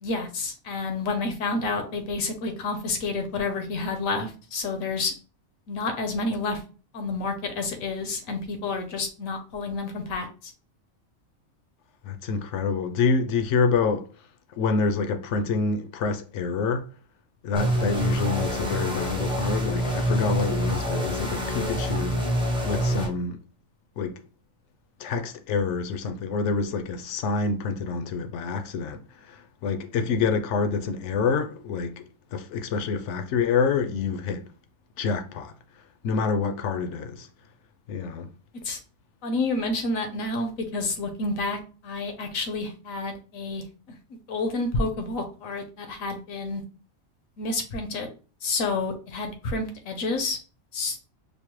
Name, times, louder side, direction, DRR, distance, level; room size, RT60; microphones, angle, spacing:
voice 1, 0.0-5.1 5.7-6.6 6.9-10.5 38.6-38.8 39.2-43.6 44.3-46.6 47.4-48.1 48.4-50.4 50.7-51.0, left 3 dB, 85° left, 1.2 m, -29 dB
voice 2, 12.0-14.1 14.6-16.9 17.4-22.3 22.6-23.4 24.0-24.2 25.0-32.0 32.3-34.5 35.0-35.5 36.0-37.3 37.9-38.3, left 5 dB, 70° left, 0.8 m, -27 dB
sound 1, 17.5-23.1, right 1 dB, 5° right, 0.4 m, -26 dB
5.1 x 2.0 x 3.0 m
omnidirectional pair, 1.4 m